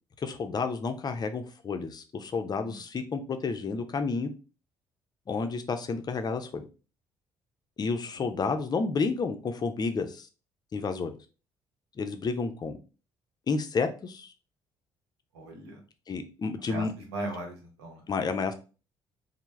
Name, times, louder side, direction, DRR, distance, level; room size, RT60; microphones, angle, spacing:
voice 1, 0.2-4.3 5.3-6.6 7.8-10.3 10.7-11.1 12.0-12.8 13.5-14.3 16.1-16.9 18.1-18.5, left 4 dB, 30° left, 0.5 m, -30 dB
voice 2, 15.3-15.8 16.7-18.0, right 2 dB, 75° right, 0.8 m, -38 dB
3.3 x 2.0 x 3.0 m
figure-of-eight pair, 45°, 13 cm